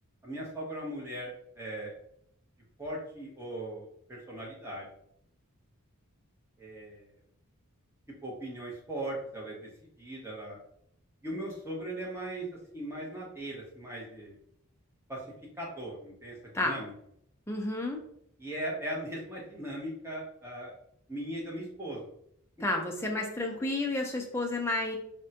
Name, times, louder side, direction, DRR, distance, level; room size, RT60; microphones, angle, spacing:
voice 1, 0.2-1.9 2.8-4.8 6.6-7.1 8.2-9.6 10.0-10.6 11.2-12.5 12.7-14.4 15.1-15.2 15.6-16.4 16.6-16.9 18.4-20.7 21.1-22.1, right 1 dB, 10° right, -4 dB, 0.7 m, -38 dB
voice 2, 17.5-18.0 22.6-25.0, left 2 dB, 10° left, 1 dB, 0.4 m, -31 dB
3.4 x 2.1 x 2.7 m, 0.70 s
head